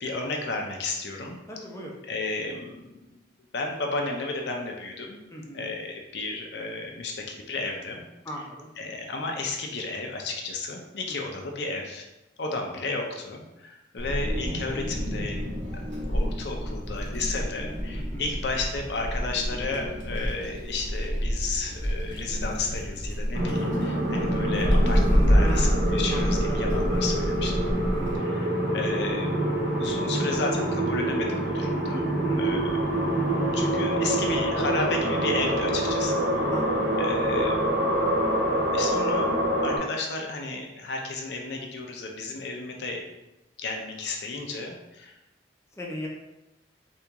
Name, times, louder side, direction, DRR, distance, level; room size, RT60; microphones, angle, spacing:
voice 1, 0.0-1.4 2.1-3.0 3.5-5.2 5.5-8.0 8.8-12.1 12.4-15.4 16.1-27.7 28.1-32.1 32.3-32.7 33.5-36.2 37.0-38.4 38.7-39.3 39.6-43.1 43.6-45.1, left 3 dB, 65° left, 2 dB, 0.5 m, -33 dB
voice 2, 1.5-1.9 5.3-5.8 8.2-8.7 11.1-11.2 17.9-18.3 25.3-25.8 26.1-26.6 28.0-28.2 32.2-32.8 36.5-37.0 45.8-46.1, equal, 15° left, -2 dB, 0.5 m, -38 dB
Wind, 14.0-28.2, equal, 85° right, 0.9 m, -28 dB
sound 1, 23.3-39.8, right 1 dB, 55° right, 0.7 m, -26 dB
3.5 x 2.4 x 2.9 m, 0.96 s
head